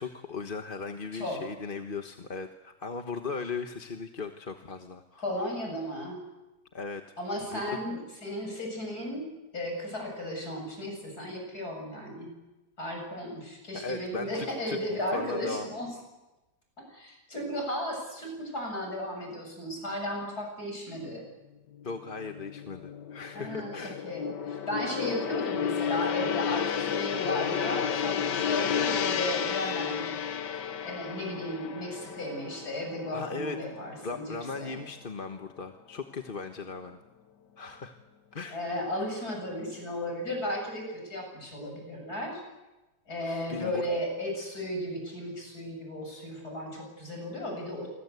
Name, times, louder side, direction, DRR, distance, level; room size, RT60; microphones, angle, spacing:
voice 1, 0.0-5.2 6.7-7.0 7.5-7.6 13.7-14.8 15.1-15.7 21.8-24.0 33.1-33.6 34.0-37.0 37.6-38.0 38.3-38.6 43.2-43.8, left 4 dB, 35° left, 6 dB, 1.3 m, -37 dB
voice 2, 5.2-6.2 7.2-9.3 9.5-12.3 12.8-15.9 16.8-21.2 23.3-30.1 30.8-34.2 34.6-34.8 38.5-42.4 43.1-47.9, left 1 dB, 60° left, 2 dB, 8.6 m, -35 dB
Gong, 21.8-34.3 34.6-34.9, left 8 dB, 80° left, 1.9 m, -32 dB
27.5 x 24.5 x 8.3 m, 1.1 s
omnidirectional pair, 1.8 m